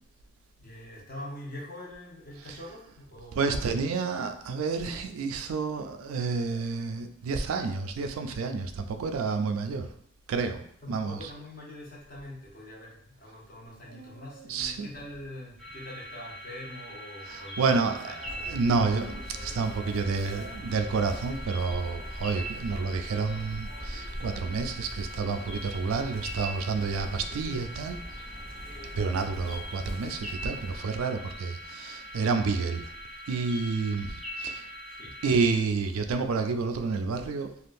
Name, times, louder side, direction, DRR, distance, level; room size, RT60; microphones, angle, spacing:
voice 1, 0.6-3.5 10.8-18.2 35.0-35.2, left 1 dB, 45° left, -4 dB, 0.9 m, -44 dB
voice 2, 3.3-9.9 10.3-11.3 13.9-14.9 17.3-28.0 29.0-32.9 33.3-34.7 35.2-37.5, right 4 dB, 85° right, 7 dB, 0.3 m, -29 dB
sound 1, 15.6-35.3, equal, ahead, 0.5 m, -42 dB
Chirp tweet, 18.2-30.8, equal, 75° left, 0.9 m, -42 dB
3.4 x 2.3 x 2.6 m, 0.65 s
head